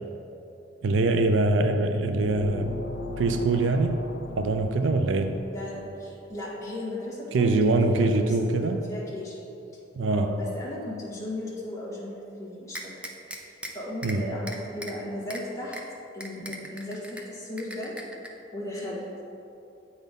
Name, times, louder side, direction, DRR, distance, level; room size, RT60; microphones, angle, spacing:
voice 1, 0.8-2.8 3.2-4.0 4.4-5.4 7.3-8.8 10.0-10.4 14.0-14.4, right 2 dB, 80° right, 7 dB, 0.4 m, -23 dB
sound 1, 2.1-5.8, left 2 dB, 65° left, 0.5 m, -38 dB
voice 2, 5.5-9.4 10.1-13.1 13.7-15.8 16.1-17.9 18.5-19.0, left 1 dB, 15° left, -8 dB, 1.7 m, -36 dB
sound 2, 12.7-13.7 14.0-14.2 14.5-14.9 15.3-15.4 15.7-15.8 16.2-17.2 17.6-18.3, right 1 dB, 5° right, 0.5 m, -38 dB
8.2 x 4.0 x 5.2 m, 2.8 s
head